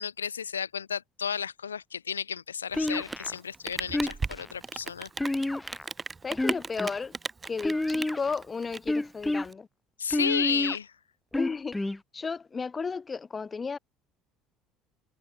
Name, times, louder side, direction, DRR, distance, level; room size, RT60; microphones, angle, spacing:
voice 1, 0.0-5.1 10.0-10.9, left 7 dB, 85° left, 3.0 m, -32 dB
sound 1, 2.7-3.4 3.9-4.5 5.2-5.9 6.3-7.0 7.6-8.3 8.9-9.5 10.1-10.8 11.3-12.0, left 2 dB, 10° left, 3.5 m, -29 dB
Rain, 2.7-9.5, right 4 dB, 25° right, 4.2 m, -37 dB
voice 2, 6.2-7.1 7.5-9.7 11.3-11.8 12.1-13.8, left 5 dB, 30° left, 4.3 m, -33 dB
figure-of-eight pair, 60°, 0 cm